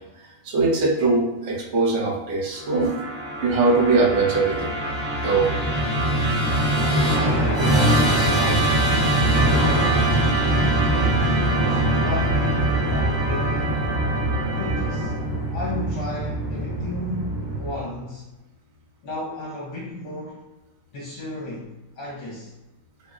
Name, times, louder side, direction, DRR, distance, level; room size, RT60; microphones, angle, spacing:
voice 1, 0.2-3.0 3.4-4.7 5.2-5.5, right 3 dB, 65° right, -3 dB, 1.0 m, -21 dB
Musical instrument, 2.6-17.9, right 1 dB, 25° right, 0.6 m, -22 dB
voice 2, 7.1-9.6 10.5-13.7 14.6-15.1 15.5-18.3 19.0-20.5 20.9-22.5, left 2 dB, 65° left, -6 dB, 1.0 m, -34 dB
2.5 x 2.0 x 3.5 m, 1.0 s
omnidirectional pair, 1.4 m